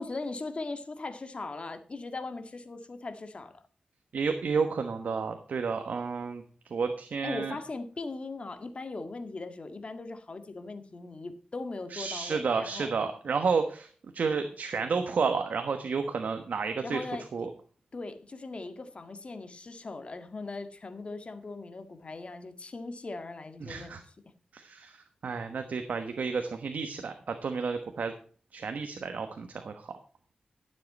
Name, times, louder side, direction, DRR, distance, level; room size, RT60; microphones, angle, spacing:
voice 1, 0.0-3.6 7.2-12.9 16.8-17.5 17.9-24.0, left 3 dB, 45° left, 1.8 m, -39 dB
voice 2, 4.1-6.4 6.7-7.5 11.9-13.9 14.1-17.0 17.3-17.5 23.6-24.0 24.5-25.0 25.2-28.1 28.5-29.9, right 5 dB, 80° right, 1.2 m, -31 dB
13.0 x 7.6 x 4.2 m
wide cardioid pair, 85°, 3 cm